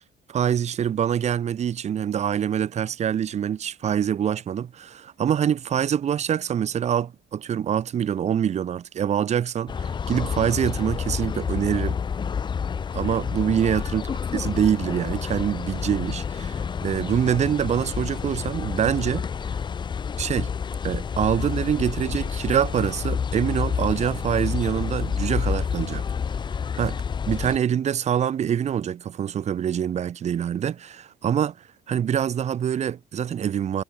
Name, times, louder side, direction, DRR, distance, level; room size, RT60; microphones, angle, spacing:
voice 1, 0.3-12.0 12.9-14.1 14.3-19.3 20.2-20.5 20.8-26.0 26.8-27.0 27.3-31.6 31.9-33.8, right 9 dB, 40° right, 0.9 m, -25 dB
sound 1, 9.7-27.6, left 6 dB, 25° left, 0.5 m, -29 dB
cardioid pair, 110°, 17 cm